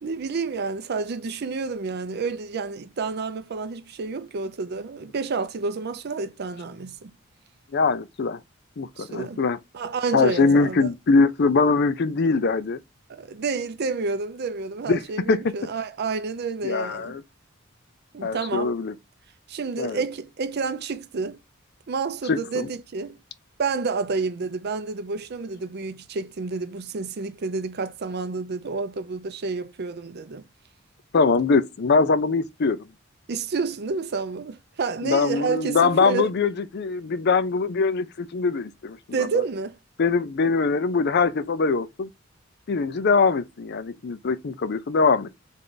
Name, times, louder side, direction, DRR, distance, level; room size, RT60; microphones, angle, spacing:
voice 1, 0.0-7.1 9.0-9.4 9.7-10.9 13.1-17.1 18.1-18.7 19.5-21.4 21.9-23.2 23.6-30.4 33.3-36.3 39.1-39.8, right 4 dB, 55° right, 0.5 m, -29 dB
voice 2, 7.7-8.4 8.8-9.6 10.1-12.8 14.9-15.0 15.3-15.4 16.6-17.2 18.2-18.9 19.8-20.0 22.3-22.7 31.1-32.8 35.0-39.3 40.0-42.1 42.7-45.3, left 4 dB, 55° left, 0.5 m, -22 dB
3.6 x 3.2 x 3.9 m
head